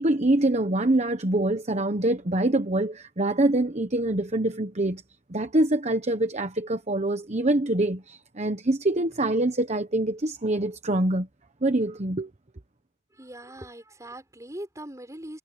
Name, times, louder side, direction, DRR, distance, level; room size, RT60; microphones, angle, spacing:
voice 1, 0.0-5.0 5.3-11.3 11.6-12.3, right 1 dB, 35° right, 1.1 m, -25 dB
voice 2, 13.1-15.4, right 1 dB, 15° right, 6.5 m, -41 dB
head